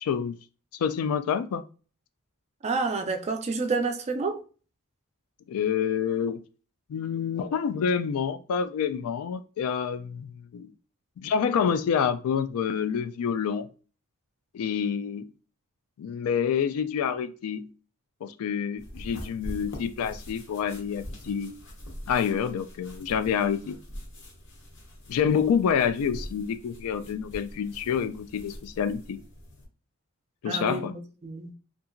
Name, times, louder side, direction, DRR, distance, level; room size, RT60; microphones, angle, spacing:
voice 1, 0.0-0.4 0.7-1.6 5.5-6.4 6.9-10.7 11.2-13.7 14.5-15.3 16.0-17.7 18.2-21.5 22.1-23.8 25.1-29.2 30.4-30.9, left 7 dB, 75° left, 0.3 m, -27 dB
voice 2, 2.6-4.4 30.5-31.6, right 4 dB, 30° right, 0.4 m, -29 dB
sound 1, 18.8-29.6, equal, 55° left, 0.8 m, -43 dB
2.8 x 2.4 x 2.5 m
head